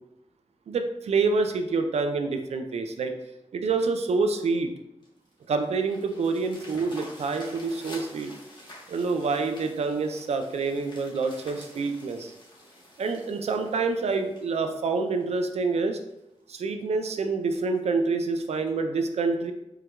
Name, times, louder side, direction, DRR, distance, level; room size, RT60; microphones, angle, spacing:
voice 1, 0.7-3.1 3.5-4.7 5.5-8.3 8.9-12.3 13.0-16.0 16.5-19.5, right 4 dB, 70° right, 6 dB, 0.4 m, -27 dB
sound 1, 5.0-15.5 16.1-16.2 16.6-16.7 17.0-17.1 17.5-17.8 18.7-18.8, equal, 45° left, 1.2 m, -48 dB
4.5 x 2.2 x 2.3 m, 0.90 s
cardioid pair, 55°, 11 cm